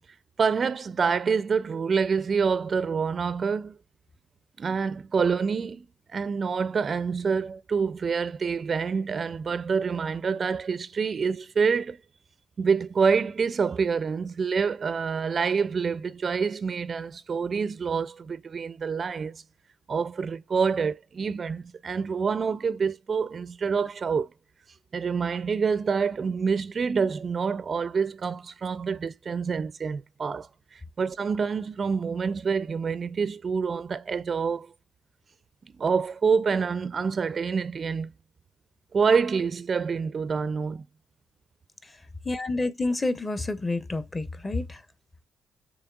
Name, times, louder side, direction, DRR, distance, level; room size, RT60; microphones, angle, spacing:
voice 1, 0.4-3.7 4.6-5.9 6.1-12.0 12.6-19.4 19.9-24.3 24.9-34.7 35.8-38.1 38.9-40.8, right 5 dB, 40° right, 0.4 m, -27 dB
voice 2, 42.3-44.8, left 2 dB, 25° left, 0.8 m, -29 dB
7.0 x 3.1 x 2.3 m
cardioid pair, 90°, 0 cm